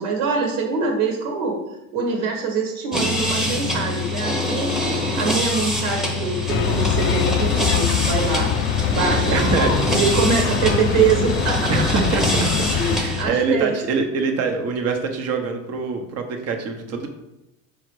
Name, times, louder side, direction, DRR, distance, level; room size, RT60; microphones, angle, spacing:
voice 1, 0.0-1.6 1.9-4.7 5.1-8.5 8.9-11.9 12.7-13.8, right 5 dB, 75° right, 1 dB, 1.7 m, -24 dB
sound 1, 2.9-13.2, left 2 dB, ahead, 0.9 m, -24 dB
sound 2, 6.5-13.0, left 6 dB, 35° left, 0.4 m, -23 dB
voice 2, 9.3-9.7 11.7-12.7 12.9-17.1, right 4 dB, 45° right, 4 dB, 1.1 m, -24 dB
6.0 x 5.1 x 4.7 m, 0.92 s
cardioid pair, 150°, 36 cm